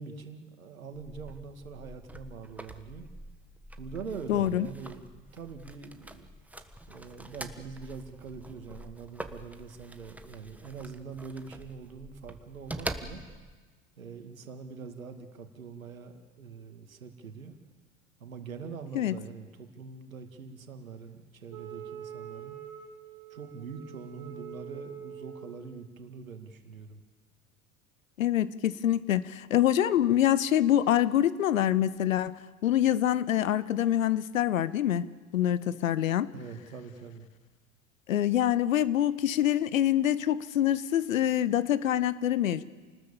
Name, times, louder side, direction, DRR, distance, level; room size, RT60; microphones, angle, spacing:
voice 1, 0.0-3.1 3.8-6.3 6.9-13.2 14.0-17.6 18.2-22.6 23.3-27.0 36.3-37.3, right 5 dB, 80° right, 6 dB, 2.3 m, -43 dB
Glove Box, 0.9-13.6, right 1 dB, 5° right, 1.4 m, -45 dB
voice 2, 4.3-4.7 18.9-19.2 28.2-35.1 35.3-36.3 38.1-42.6, left 11 dB, 70° left, 18 dB, 1.0 m, -25 dB
Wind instrument woodwind instrument, 21.5-25.6, right 9 dB, 35° right, 4.6 m, -44 dB
29.0 x 20.0 x 7.3 m, 1.4 s
figure-of-eight pair, 75°, 41 cm